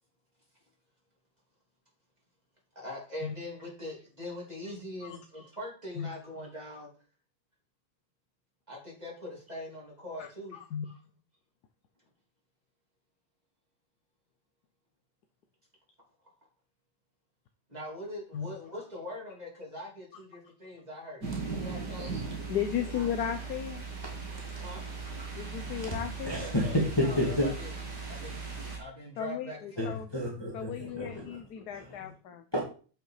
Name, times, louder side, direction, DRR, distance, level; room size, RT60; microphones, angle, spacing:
voice 1, 2.7-6.9 8.7-11.0 17.7-22.1 22.8-23.2 24.6-24.8 27.0-27.7 28.0-30.0, left 1 dB, 20° right, -3 dB, 3.5 m, -42 dB
voice 2, 10.5-10.9 18.3-18.5 22.5-23.9 25.4-26.5 29.2-30.1 30.5-32.4, left 9 dB, 65° left, 7 dB, 1.3 m, -35 dB
sound 1, 21.2-28.8, right 4 dB, 70° right, 3.1 m, -38 dB
voice 3, 26.3-27.5 29.8-31.2 32.5-32.6, left 1 dB, 15° left, -2 dB, 2.0 m, -30 dB
8.5 x 5.7 x 4.8 m, 0.39 s
omnidirectional pair, 1.9 m